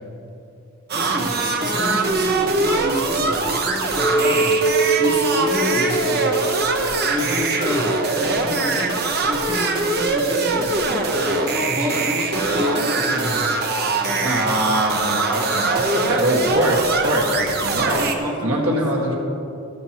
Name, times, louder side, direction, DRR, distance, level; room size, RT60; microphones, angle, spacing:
voice 1, 0.9-6.4 6.7-10.8 11.1-13.5 13.9-14.4 17.9-19.1, equal, 20° right, -3 dB, 1.6 m, -28 dB
sound 1, 0.9-18.1, right 3 dB, 50° right, 1.0 m, -22 dB
Chink clink, 4.0-8.3 8.6-9.4, right 2 dB, 15° left, 2.5 m, -24 dB
voice 2, 14.2-18.0 18.4-19.1, right 1 dB, 85° right, -2 dB, 1.8 m, -22 dB
13.5 x 13.5 x 3.0 m, 2.9 s
head